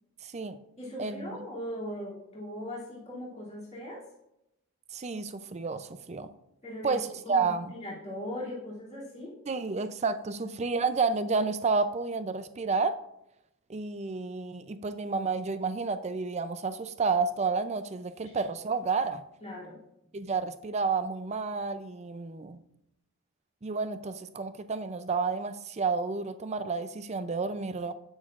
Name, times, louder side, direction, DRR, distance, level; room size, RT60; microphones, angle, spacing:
voice 1, 0.2-0.6 1.0-1.5 4.9-6.3 6.8-7.7 9.5-13.0 13.7-19.2 20.1-22.6 23.6-27.9, right 4 dB, 30° right, 11 dB, 0.4 m, -30 dB
voice 2, 0.8-4.0 6.6-7.0 7.2-9.4 19.4-19.8, left 1 dB, 30° left, -6 dB, 2.7 m, -39 dB
16.5 x 6.4 x 2.5 m, 0.86 s
head